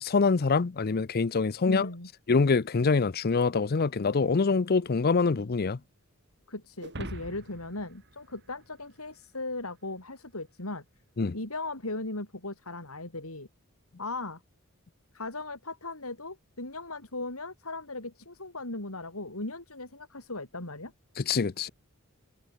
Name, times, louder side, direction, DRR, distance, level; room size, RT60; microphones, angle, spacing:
voice 1, 0.0-1.9 2.3-5.8 11.2-11.4 21.2-21.7, left 4 dB, 45° left, 0.6 m, -25 dB
voice 2, 1.7-2.1 6.5-10.8 11.3-13.5 14.0-14.4 15.1-20.9, left 2 dB, 75° left, 5.2 m, -37 dB
sound 1, 6.8-9.3, right 1 dB, 50° right, 3.9 m, -43 dB
head